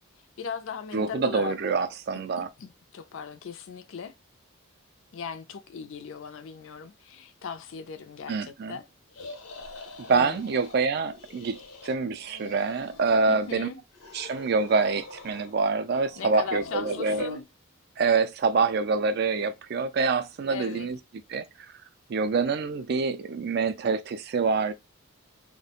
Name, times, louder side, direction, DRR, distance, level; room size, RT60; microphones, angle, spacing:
voice 1, 0.4-1.5 2.6-4.1 5.1-8.8 10.0-10.4 13.3-13.8 16.2-17.4 20.5-20.9, left 5 dB, 65° left, 0.4 m, -38 dB
voice 2, 0.9-2.5 8.3-8.8 10.1-13.7 14.1-17.3 18.0-21.0 21.3-21.5 22.1-24.7, right 4 dB, 45° right, 0.3 m, -26 dB
sound 1, 9.1-10.8 11.1-11.9 12.2-13.6 13.9-15.6 15.9-17.4, left 4 dB, 85° left, 0.7 m, -44 dB
2.4 x 2.1 x 2.8 m
head